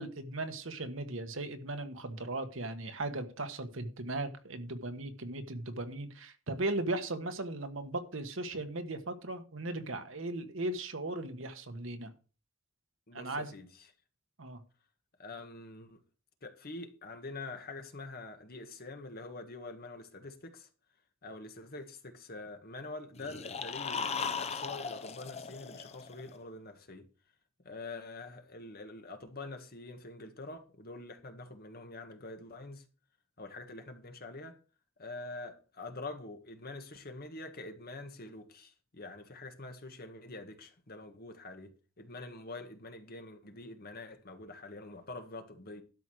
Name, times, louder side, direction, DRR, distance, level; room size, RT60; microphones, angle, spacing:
voice 1, 0.0-12.1 13.1-13.5 14.4-14.6, right 2 dB, 70° right, 1.4 m, -37 dB
voice 2, 13.1-13.9 15.2-16.0 16.4-20.7 21.2-27.1 27.6-32.9 33.4-34.6 35.0-45.8, left 2 dB, 50° left, 1.7 m, -45 dB
sound 1, 23.2-26.3, left 5 dB, 30° left, 0.7 m, -37 dB
12.0 x 5.0 x 6.3 m
head